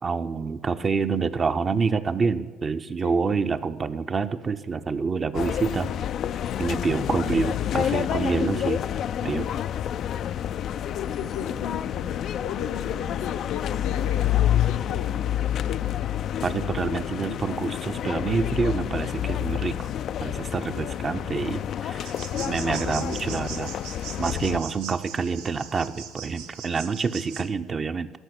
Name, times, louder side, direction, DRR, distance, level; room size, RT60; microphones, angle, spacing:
voice 1, 0.0-5.9 6.6-8.8 9.2-9.5 16.4-19.9 20.2-22.1 22.4-23.7 24.2-28.1, right 5 dB, 35° right, 9 dB, 0.7 m, -27 dB
sound 1, 5.3-24.6, left 10 dB, 55° left, 0.4 m, -28 dB
voice 2, 10.9-16.0, left 8 dB, 80° left, 4 dB, 0.9 m, -37 dB
sound 2, 22.0-27.5, right 7 dB, 80° right, 0.9 m, -40 dB
13.5 x 5.9 x 8.7 m, 1.3 s
hypercardioid pair, 60°, 0 cm